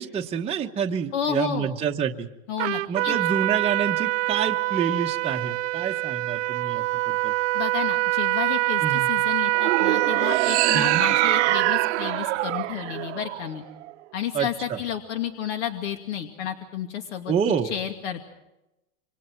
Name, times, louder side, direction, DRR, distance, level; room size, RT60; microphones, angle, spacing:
voice 1, 0.0-2.3 2.9-7.3 8.8-9.1 10.7-11.0 14.3-14.8 17.3-17.7, right 7 dB, 15° right, 1 dB, 1.1 m, -28 dB
voice 2, 1.1-1.7 2.5-3.2 7.5-13.6 14.1-17.3 17.7-18.3, left 9 dB, 65° left, 5 dB, 2.5 m, -31 dB
Trumpet, 2.6-12.1, right 18 dB, 90° right, 0.7 m, -25 dB
sound 1, 9.5-13.9, right 17 dB, 65° right, 1.1 m, -25 dB
28.0 x 25.0 x 4.6 m, 0.93 s
supercardioid pair, 145°, 37 cm